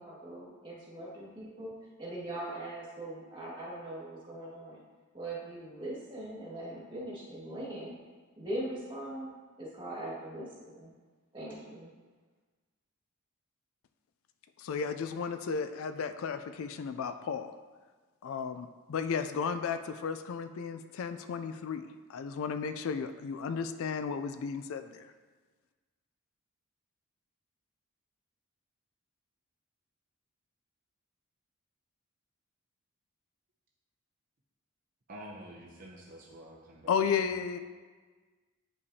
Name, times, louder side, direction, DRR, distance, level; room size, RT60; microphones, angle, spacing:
voice 1, 0.0-4.8 5.1-7.9 8.3-9.3 9.6-10.9 11.3-11.9, right 1 dB, 20° right, -7 dB, 1.8 m, -41 dB
voice 2, 14.6-17.5 18.2-25.1 36.9-37.6, left 6 dB, 65° left, 10 dB, 0.3 m, -34 dB
voice 3, 35.1-37.2, right 1 dB, 40° right, -3 dB, 0.6 m, -48 dB
8.3 x 5.3 x 2.7 m, 1.4 s
head